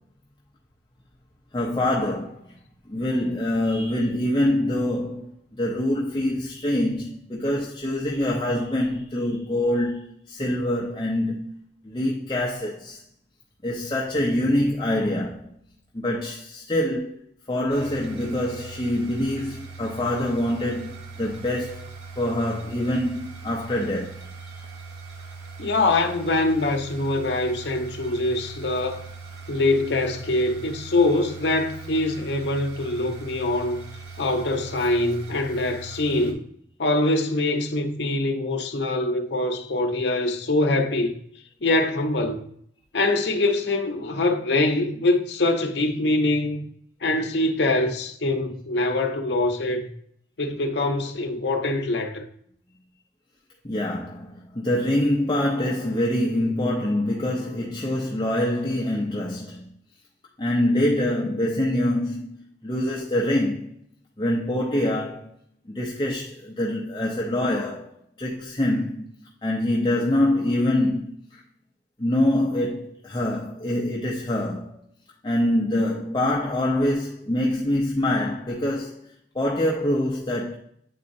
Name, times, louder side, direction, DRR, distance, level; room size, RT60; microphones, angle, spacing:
voice 1, 1.5-2.6 2.9-13.0 13.6-15.5 15.9-17.2 17.5-21.9 22.2-24.1 53.6-59.7 60.4-62.4 62.6-63.7 64.2-65.3 65.7-71.4 72.0-74.8 75.2-79.0 79.3-80.5, left 1 dB, 25° left, 0.7 m, -25 dB
sound 1, 17.7-36.3, right 4 dB, 65° right, 1.3 m, -41 dB
voice 2, 25.6-29.0 29.5-33.9 34.2-36.4 36.8-41.2 41.6-42.4 42.9-46.7 47.0-49.9 50.4-52.2, left 2 dB, 75° left, 0.8 m, -24 dB
9.4 x 4.2 x 2.6 m
head